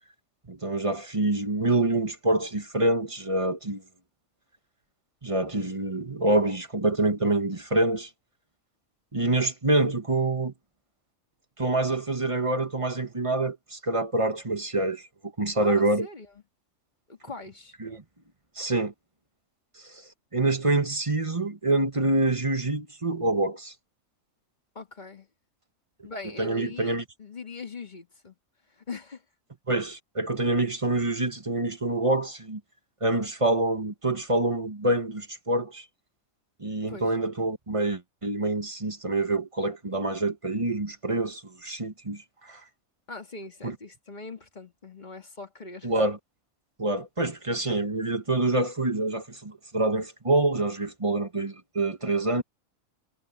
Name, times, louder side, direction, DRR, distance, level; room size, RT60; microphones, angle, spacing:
voice 1, 0.5-3.8 5.2-8.1 9.1-10.5 11.6-15.0 15.4-16.1 17.8-18.0 18.6-18.9 19.8-20.0 20.3-23.7 26.4-27.0 29.7-32.6 33.0-35.9 36.6-42.6 43.6-43.8 45.8-46.2 46.8-52.4, right 2 dB, 25° right, 1.8 m, -26 dB
voice 2, 15.6-16.3 17.1-17.7 24.7-25.3 26.0-28.4 28.7-29.2 36.9-37.2 43.1-45.9, left 3 dB, 35° left, 2.3 m, -41 dB
omnidirectional pair, 1.4 m